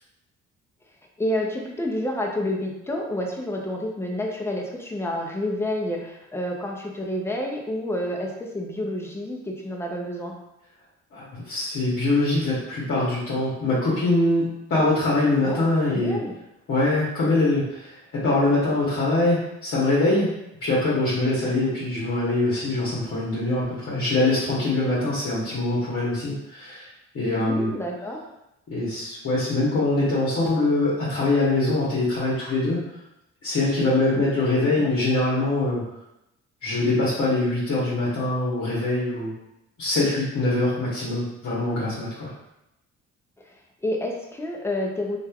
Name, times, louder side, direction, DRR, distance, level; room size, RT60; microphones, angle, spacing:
voice 1, 1.2-10.3 15.4-16.3 27.4-28.2 34.1-34.3 34.8-34.9 43.8-45.2, left 1 dB, 10° left, 0 dB, 0.5 m, -29 dB
voice 2, 11.1-16.2 16.7-20.3 20.6-26.9 27.1-27.7 28.7-32.8 33.4-35.8 36.6-39.3 39.8-42.3, left 2 dB, 50° left, -8 dB, 0.9 m, -23 dB
3.0 x 2.4 x 2.3 m, 0.88 s
cardioid pair, 90°, 30 cm